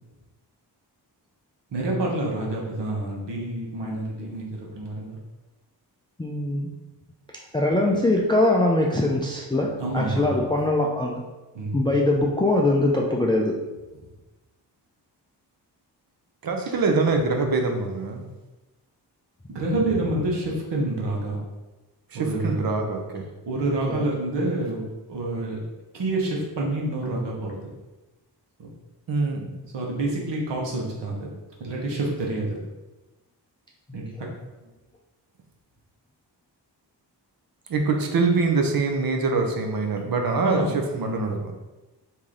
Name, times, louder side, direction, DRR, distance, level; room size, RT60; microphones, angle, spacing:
voice 1, 1.7-4.4 4.7-5.2 9.8-10.4 11.5-11.9 19.5-21.4 22.1-22.6 23.5-25.6 25.9-27.6 28.6-28.7 29.7-31.3 31.6-32.6 33.9-34.0 40.4-40.7 41.0-41.3, right 2 dB, 75° right, -2 dB, 1.1 m, -27 dB
voice 2, 6.2-6.7 7.5-11.2 11.7-13.5 16.7-16.8 19.7-20.1 23.9-24.1, left 2 dB, 10° left, -1 dB, 0.4 m, -22 dB
voice 3, 16.4-18.2 22.1-23.3 29.1-29.6 37.7-41.5, right 3 dB, 55° right, 3 dB, 0.7 m, -24 dB
3.1 x 2.7 x 3.7 m, 1.1 s
cardioid pair, 60°, 43 cm